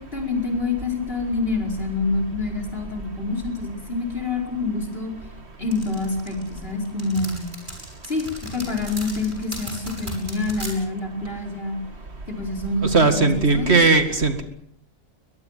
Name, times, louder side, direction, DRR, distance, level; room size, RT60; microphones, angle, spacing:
voice 1, 0.0-5.1 5.6-7.5 8.0-11.8 12.3-13.8, left 3 dB, 50° left, 2 dB, 5.2 m, -27 dB
sound 1, 5.7-10.7, right 1 dB, 40° right, 6.9 m, -36 dB
voice 2, 12.8-14.4, right 3 dB, 55° right, 8 dB, 2.3 m, -18 dB
22.5 x 21.5 x 7.4 m, 0.64 s
omnidirectional pair, 1.3 m